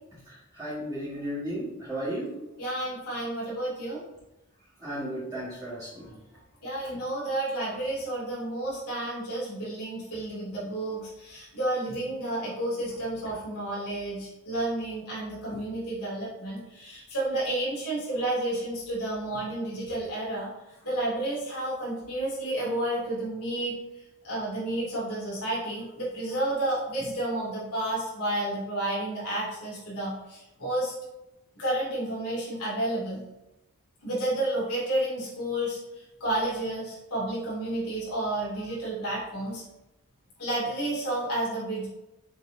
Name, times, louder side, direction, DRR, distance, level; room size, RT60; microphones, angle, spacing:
voice 1, 0.2-2.3 4.8-6.2, right 1 dB, 15° right, -11 dB, 1.9 m, -34 dB
voice 2, 2.6-4.0 6.6-20.5 20.8-23.7 24.2-30.9 31.6-33.2 34.0-39.6 40.4-41.9, right 1 dB, 90° left, -6 dB, 2.5 m, -31 dB
7.9 x 5.8 x 2.7 m, 0.95 s
head